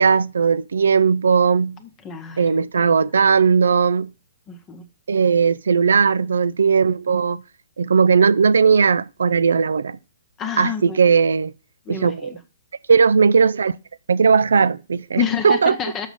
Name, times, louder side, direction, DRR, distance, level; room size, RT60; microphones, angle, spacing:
voice 1, 0.0-1.8 2.4-4.1 5.1-7.4 7.8-10.0 10.6-11.5 11.9-12.4 12.9-13.7 14.1-15.8, right 5 dB, 70° right, 0.4 m, -17 dB
voice 2, 2.0-3.0 4.5-4.8 10.4-11.1 11.9-12.4 15.2-16.1, left 8 dB, 20° left, 0.9 m, -29 dB
6.4 x 6.0 x 5.5 m
figure-of-eight pair, 120°, 0 cm